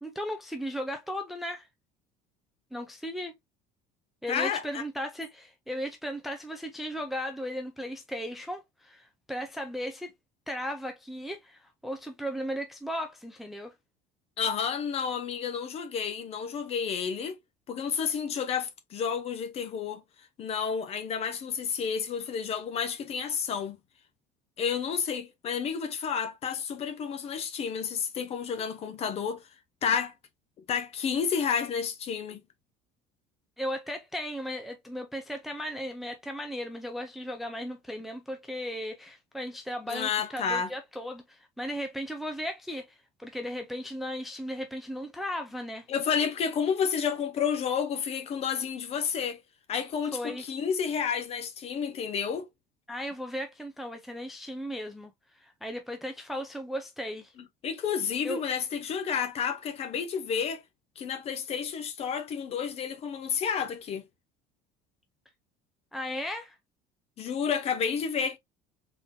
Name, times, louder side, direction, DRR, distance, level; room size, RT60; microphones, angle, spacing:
voice 1, 0.0-1.7 2.7-3.3 4.2-10.1 10.5-13.7 33.6-45.9 50.1-50.4 52.9-57.3 58.2-58.4 65.9-66.6, equal, ahead, 0.5 m, -36 dB
voice 2, 4.3-4.8 14.4-17.4 17.7-20.0 20.4-23.8 24.6-29.4 29.8-30.1 30.7-32.4 39.9-40.7 45.9-49.4 49.7-52.5 57.4-60.6 61.0-64.0 67.2-68.4, left 7 dB, 35° left, 0.8 m, -30 dB
4.0 x 3.7 x 2.6 m
cardioid pair, 170°, 19 cm